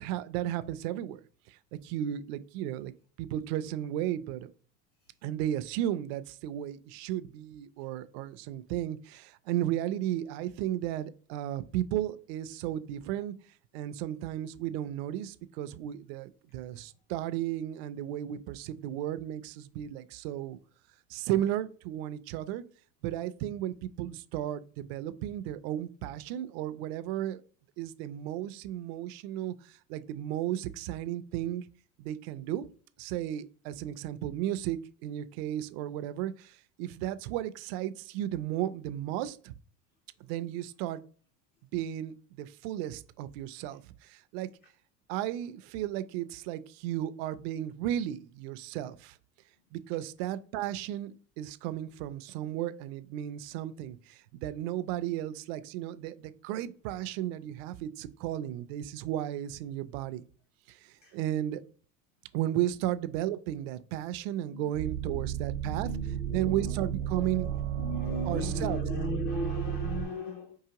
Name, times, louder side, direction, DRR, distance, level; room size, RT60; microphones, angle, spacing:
voice 1, 0.0-4.5 5.2-13.3 13.7-20.6 21.1-22.6 23.0-27.4 27.8-31.7 32.0-32.7 33.0-39.5 40.2-41.0 41.7-44.5 45.1-49.2 49.7-60.2 60.7-61.6 62.3-65.9 66.3-67.5 68.3-68.8, right 12 dB, 65° right, 0.5 m, -34 dB
voice 2, 64.5-67.3 67.8-70.6, left 3 dB, 30° left, 0.4 m, -38 dB
sound 1, 64.7-70.1, right 11 dB, 85° right, 0.9 m, -33 dB
4.6 x 3.1 x 2.9 m
cardioid pair, 175°, 34 cm